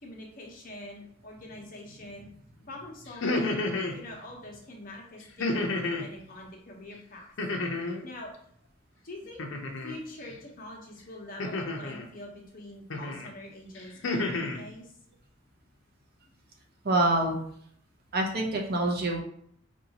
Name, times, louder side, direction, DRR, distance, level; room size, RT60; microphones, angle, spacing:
voice 1, 0.0-7.3 7.8-8.3 9.0-9.4 9.8-14.9, left 1 dB, 45° left, 0 dB, 0.9 m, -45 dB
sound 1, 3.1-4.0 5.4-6.1 7.4-8.0 9.4-10.0 11.4-12.0 12.9-13.3 13.7-14.6, left 2 dB, 70° left, 0.6 m, -30 dB
voice 2, 16.8-17.4 18.1-19.2, right 2 dB, 50° right, 0 dB, 0.7 m, -26 dB
4.5 x 2.7 x 2.8 m, 0.64 s
head